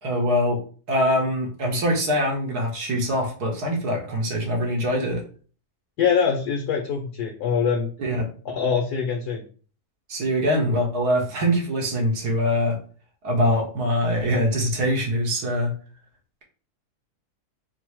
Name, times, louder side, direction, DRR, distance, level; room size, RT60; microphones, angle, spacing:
voice 1, 0.0-0.6 0.9-5.2 8.0-8.2 10.1-12.8 13.2-15.7, equal, 80° right, 0 dB, 1.7 m, -23 dB
voice 2, 6.0-7.9 8.5-9.4, left 6 dB, 85° left, 1 dB, 1.3 m, -23 dB
4.5 x 2.0 x 4.5 m, 0.41 s
omnidirectional pair, 1.7 m